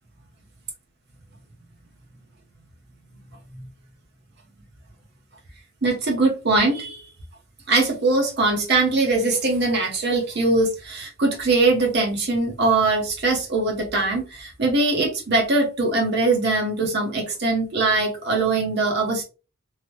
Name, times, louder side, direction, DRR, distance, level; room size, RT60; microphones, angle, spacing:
voice 1, 5.8-7.0 7.7-19.2, right 3 dB, 55° right, 0.7 m, -21 dB
3.1 x 2.0 x 2.9 m
head